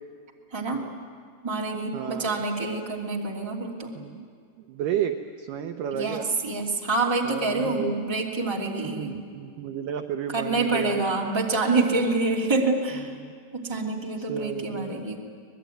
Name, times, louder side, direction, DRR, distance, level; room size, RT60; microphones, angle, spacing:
voice 1, 0.5-0.8 1.4-3.9 5.9-9.2 10.3-13.1 13.5-15.2, right 3 dB, 10° right, -2 dB, 1.9 m, -27 dB
voice 2, 1.9-2.4 4.0-4.3 4.7-6.3 7.2-8.0 9.0-11.2 13.2-13.3 14.3-14.9, right 9 dB, 75° right, 7 dB, 2.0 m, -32 dB
25.0 x 20.5 x 9.3 m, 2.2 s
omnidirectional pair, 4.7 m